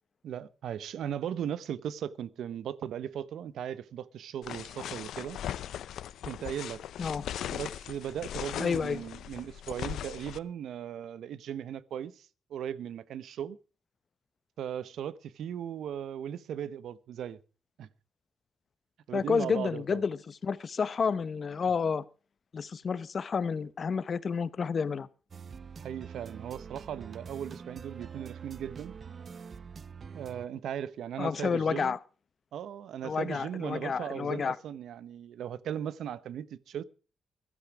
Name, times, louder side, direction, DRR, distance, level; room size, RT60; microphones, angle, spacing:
voice 1, 0.2-5.4 6.3-6.8 7.5-13.6 14.6-17.4 17.8-17.9 19.1-20.0 25.8-28.9 30.1-32.0 32.5-36.8, right 9 dB, 80° right, 0.8 m, -37 dB
sound 1, 4.4-10.4, left 11 dB, 80° left, 0.6 m, -39 dB
voice 2, 8.6-9.0 19.1-22.0 22.5-25.1 31.2-32.0 33.0-34.6, left 5 dB, 45° left, 0.9 m, -30 dB
sound 2, 25.3-30.5, right 6 dB, 40° right, 0.6 m, -45 dB
15.0 x 12.0 x 4.9 m
cardioid pair, 110°, 0 cm